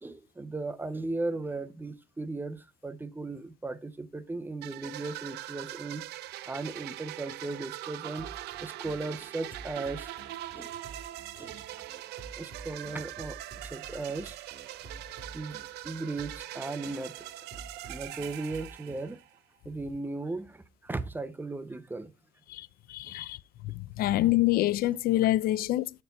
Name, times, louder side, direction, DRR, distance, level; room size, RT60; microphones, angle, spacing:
voice 1, 0.0-6.0 6.5-8.3 8.6-10.1 10.5-10.8 11.4-11.8 12.4-14.4 15.3-15.6 15.8-17.1 17.8-19.2 19.6-22.1 23.0-23.1, right 3 dB, 10° right, 0.6 m, -37 dB
sound 1, 4.6-19.4, right 15 dB, 75° right, 0.4 m, -42 dB
sound 2, 8.2-18.8, right 3 dB, 40° right, 1.5 m, -50 dB
voice 2, 22.5-23.4 23.6-25.9, left 15 dB, 60° left, 0.4 m, -26 dB
6.7 x 4.4 x 4.0 m
cardioid pair, 110°, 17 cm